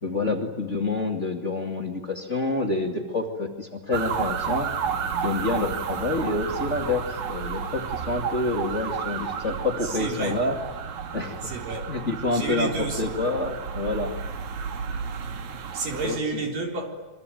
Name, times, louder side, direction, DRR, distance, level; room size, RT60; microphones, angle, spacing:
voice 1, 0.0-4.7 5.2-10.6 11.1-11.4 11.9-14.1 16.0-16.4, left 2 dB, 25° left, 2.3 m, -28 dB
sound 1, 3.9-16.2, right 7 dB, 65° right, 3.0 m, -32 dB
voice 2, 10.0-10.4 11.4-11.9 12.3-13.1 15.7-16.9, right 3 dB, 80° right, 5.6 m, -30 dB
26.5 x 24.0 x 9.3 m
omnidirectional pair, 3.8 m